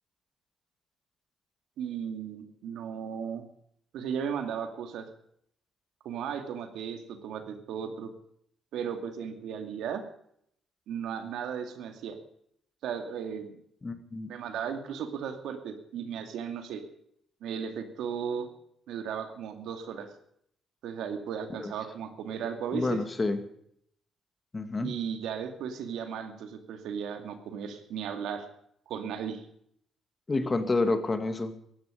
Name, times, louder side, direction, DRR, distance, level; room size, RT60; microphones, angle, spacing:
voice 1, 1.8-3.5 3.9-5.1 6.0-8.1 8.7-10.0 10.9-12.2 12.8-13.6 14.3-16.8 17.4-18.5 18.9-20.1 20.8-23.0 24.8-28.5 28.9-29.5, right 7 dB, 80° right, 6 dB, 2.5 m, -35 dB
voice 2, 13.8-14.3 21.6-21.7 22.7-23.4 24.5-24.9 30.3-31.5, left 3 dB, 25° left, 8 dB, 2.3 m, -29 dB
17.5 x 14.5 x 5.2 m, 0.69 s
cardioid pair, 90°, 0 cm